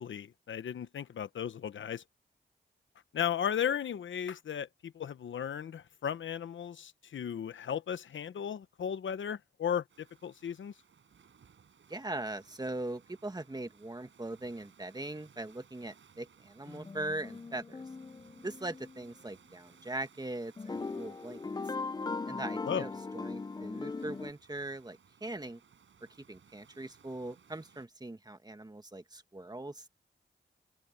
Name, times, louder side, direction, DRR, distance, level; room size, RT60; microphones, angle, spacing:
voice 1, 0.0-2.0 3.1-10.7 22.6-22.9, left 8 dB, 85° left, 0.9 m, -35 dB
sound 1, 9.9-27.9, right 7 dB, 85° right, 5.9 m, -63 dB
voice 2, 11.9-17.8 18.4-21.4 22.3-25.6 26.3-29.9, right 2 dB, 20° right, 1.7 m, -40 dB
sound 2, 16.7-19.0 20.6-24.3, left 4 dB, 20° left, 0.4 m, -39 dB
cardioid pair, 70°, 19 cm